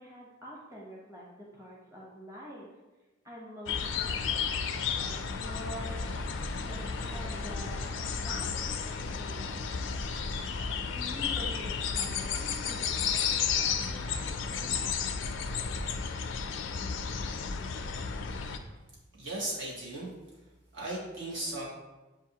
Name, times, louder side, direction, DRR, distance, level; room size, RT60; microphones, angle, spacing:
voice 1, 0.0-2.7 3.2-6.0 6.7-9.9 10.9-14.0 14.2-14.9, equal, 15° right, -6 dB, 0.9 m, -47 dB
sound 1, 3.7-18.6, left 6 dB, 70° left, 0.4 m, -33 dB
sound 2, 5.9-9.9, left 1 dB, 10° left, 0.6 m, -45 dB
voice 2, 19.2-20.1 20.7-21.6, right 1 dB, 70° right, -6 dB, 1.5 m, -36 dB
7.3 x 2.5 x 2.8 m, 1.1 s
head